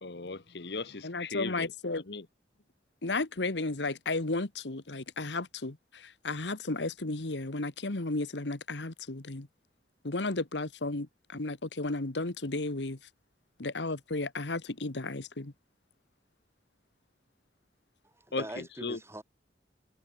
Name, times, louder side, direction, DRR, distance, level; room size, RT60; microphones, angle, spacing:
voice 1, 0.0-2.2 18.3-19.0, left 3 dB, 65° left, 1.2 m, -38 dB
voice 2, 1.0-2.0 3.0-9.5 10.0-13.0 13.6-15.5, left 2 dB, 80° left, 1.6 m, -34 dB
voice 3, 18.0-19.2, right 1 dB, 15° right, 7.6 m, -42 dB
head